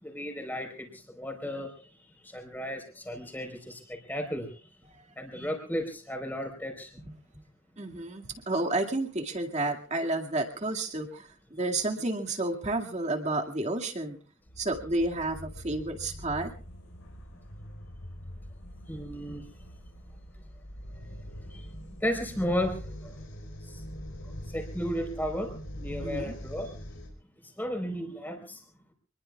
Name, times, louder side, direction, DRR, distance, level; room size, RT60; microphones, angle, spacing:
voice 1, 0.0-0.9 1.1-1.7 2.3-4.6 5.2-6.9 18.9-19.4 21.5-21.7 22.0-23.1 24.5-25.5 25.8-26.7 27.6-28.6, equal, 10° left, 3 dB, 4.3 m, -34 dB
voice 2, 7.8-14.2 14.6-16.5 26.0-26.3, right 2 dB, 30° right, 3 dB, 2.2 m, -31 dB
sound 1, 14.5-27.1, equal, 85° left, 4.5 m, -43 dB
27.0 x 21.0 x 2.4 m, 0.38 s
head